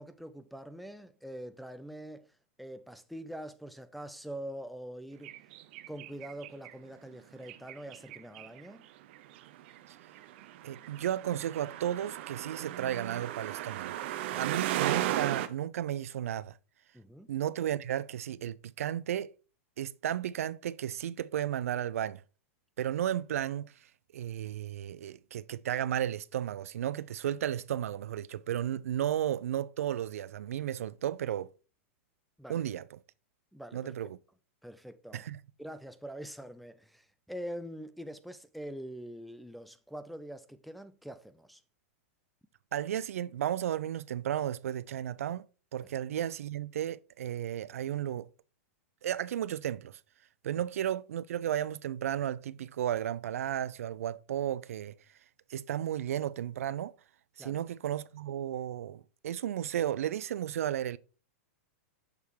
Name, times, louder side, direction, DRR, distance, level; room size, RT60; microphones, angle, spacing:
voice 1, 0.0-2.3 2.6-5.3 5.9-8.9 14.3-14.6 16.9-17.3 32.4-32.7 33.5-34.0 34.6-35.2 35.6-41.6 45.8-45.9 57.4-57.7, equal, ahead, 0.3 m, -44 dB
sound 1, 5.2-6.7 7.4-8.8 9.1-15.5, right 13 dB, 50° right, 0.6 m, -36 dB
voice 2, 10.6-14.0 14.4-16.5 17.3-19.3 19.8-22.2 22.8-23.7 24.1-31.5 32.5-32.8 33.7-34.2 35.1-35.4 42.7-45.5 45.7-48.3 49.0-50.0 50.4-55.0 55.5-56.9 57.4-61.0, right 11 dB, 90° right, 0.4 m, -33 dB
6.6 x 3.5 x 4.5 m
supercardioid pair, 150°, 8 cm